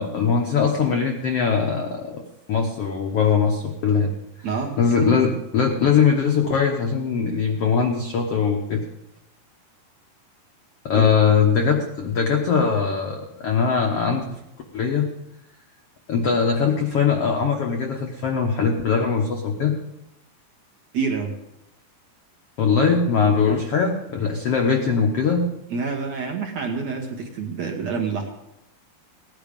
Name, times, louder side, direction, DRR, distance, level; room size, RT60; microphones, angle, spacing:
voice 1, 0.0-2.2 2.5-4.1 4.8-8.8 10.8-14.2 14.7-15.1 16.1-19.7 22.6-25.5, left 6 dB, 70° left, 2 dB, 1.4 m, -21 dB
voice 2, 4.4-4.8 10.9-11.1 20.9-21.3 25.7-28.5, right 5 dB, 60° right, 2 dB, 2.0 m, -27 dB
17.5 x 10.5 x 5.2 m, 0.86 s
omnidirectional pair, 4.4 m